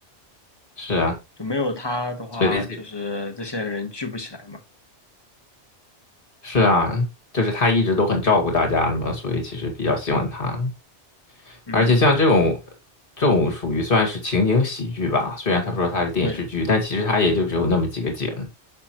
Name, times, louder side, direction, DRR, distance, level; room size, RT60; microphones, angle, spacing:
voice 1, 0.8-1.2 2.4-2.6 6.4-7.1 7.3-10.7 11.7-12.6 13.2-18.5, left 2 dB, 50° left, 2.3 m, -21 dB
voice 2, 1.4-4.6 11.7-12.0 16.2-16.4, left 2 dB, 20° left, 1.1 m, -29 dB
6.7 x 6.0 x 2.9 m
omnidirectional pair, 1.2 m